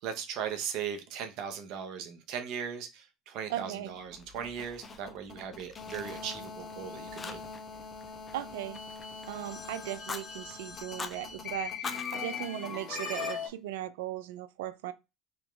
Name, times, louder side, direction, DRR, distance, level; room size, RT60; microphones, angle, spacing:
voice 1, 0.0-7.4, right 8 dB, 65° right, 0.8 m, -38 dB
voice 2, 3.5-3.9 8.3-8.8 9.3-11.7 12.1-14.9, right 12 dB, 80° right, 0.4 m, -37 dB
sound 1, 3.9-13.5, left 5 dB, 45° left, 1.5 m, -40 dB
Fire, 4.2-5.3 5.5-6.7 7.2-7.7 8.0-9.4 9.9-10.2 10.8-11.2 11.7-13.3, left 4 dB, 25° left, 0.5 m, -44 dB
3.5 x 3.0 x 3.4 m
hypercardioid pair, 85°, 0 cm